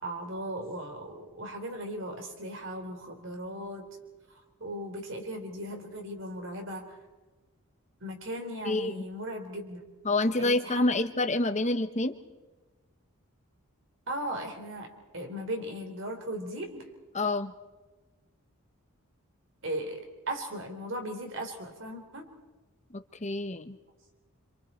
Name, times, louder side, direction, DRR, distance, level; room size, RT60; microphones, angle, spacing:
voice 1, 0.0-3.8 4.6-7.0 8.0-9.8 10.4-11.0 14.1-16.9 19.6-22.3, right 1 dB, 60° right, 4 dB, 3.8 m, -37 dB
voice 2, 10.0-12.1 17.1-17.5 22.9-23.8, left 2 dB, 30° left, 9 dB, 1.1 m, -27 dB
27.5 x 26.5 x 4.4 m, 1.2 s
head